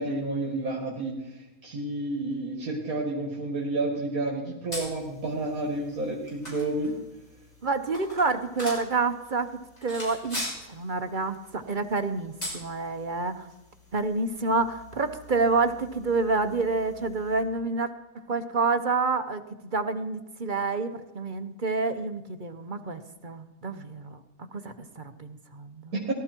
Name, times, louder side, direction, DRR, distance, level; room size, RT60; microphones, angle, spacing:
voice 1, 0.0-6.9 25.9-26.1, right 2 dB, 70° right, -2 dB, 2.6 m, -30 dB
sound 1, 4.7-17.4, equal, 25° left, 6.3 m, -43 dB
voice 2, 7.6-9.5 9.8-10.4 10.7-13.5 13.9-17.9 18.3-19.4 19.7-24.2 24.5-25.9, right 3 dB, 40° right, 9 dB, 0.9 m, -28 dB
18.0 x 13.0 x 4.5 m, 1.0 s
omnidirectional pair, 1.6 m